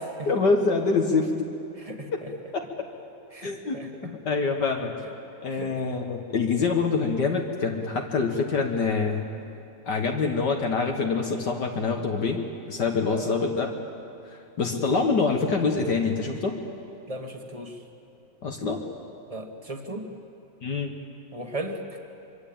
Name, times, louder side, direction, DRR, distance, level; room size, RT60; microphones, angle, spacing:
voice 1, 0.3-1.5 2.1-2.2 2.5-2.7 3.4-4.9 5.4-9.2 9.9-12.4 12.7-13.7 14.6-16.6 18.4-18.8 20.6-20.9, left 4 dB, 60° left, 2 dB, 2.1 m, -25 dB
voice 2, 1.8-2.3 3.3-3.9 5.5-5.7 13.1-13.4 17.1-17.8 19.3-20.1 21.3-21.8, right 1 dB, 20° right, 4 dB, 2.0 m, -36 dB
25.0 x 24.0 x 8.8 m, 2.9 s
omnidirectional pair, 2.0 m